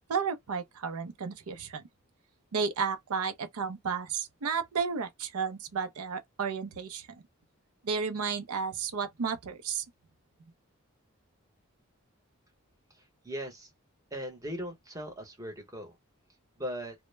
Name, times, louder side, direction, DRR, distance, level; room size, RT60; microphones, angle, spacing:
voice 1, 0.1-1.8 2.5-7.1 7.8-9.8, right 5 dB, 90° right, 0.5 m, -32 dB
voice 2, 13.2-13.7 14.1-15.9 16.6-16.9, equal, 15° right, 0.8 m, -38 dB
2.1 x 2.0 x 3.1 m
head